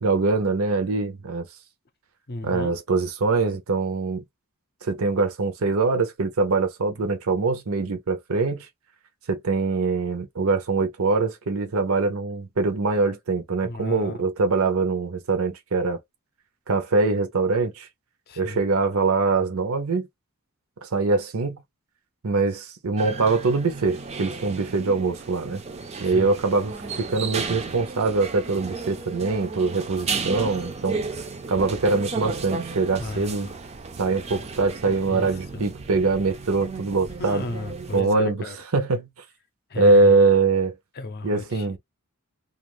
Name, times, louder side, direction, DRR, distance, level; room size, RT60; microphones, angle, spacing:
voice 1, 0.0-1.5 2.4-4.2 4.8-8.7 9.3-16.0 16.7-17.9 18.4-20.1 20.8-21.6 22.2-25.6 26.0-26.7 27.0-31.0 31.5-33.5 34.0-37.4 37.9-39.1 39.8-40.7 41.2-41.8, right 3 dB, 65° right, 0.7 m, -23 dB
voice 2, 2.3-2.8 13.6-14.2 18.3-18.6 26.0-26.4 33.0-33.5 34.8-35.6 37.2-38.6 39.7-40.3 40.9-41.8, left 3 dB, 45° left, 0.6 m, -35 dB
sound 1, 23.0-38.0, right 4 dB, 30° right, 0.4 m, -34 dB
2.4 x 2.3 x 3.1 m
head